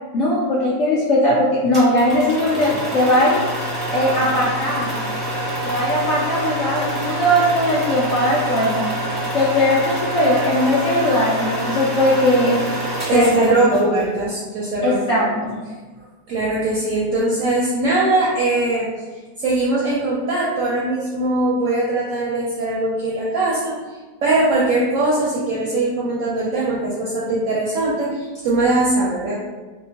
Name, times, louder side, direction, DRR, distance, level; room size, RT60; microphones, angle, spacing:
voice 1, 0.1-3.4 3.8-5.0 5.6-8.9 9.3-12.6 13.1-13.5 14.8-15.6, left 1 dB, 75° left, -7 dB, 0.6 m, -19 dB
sound 1, 1.7-14.0, right 1 dB, 20° right, 0.6 m, -26 dB
voice 2, 13.1-15.2 16.3-18.9 19.4-23.7 24.2-29.4, right 2 dB, 70° right, -6 dB, 0.8 m, -21 dB
2.8 x 2.1 x 2.7 m, 1.3 s
omnidirectional pair, 1.7 m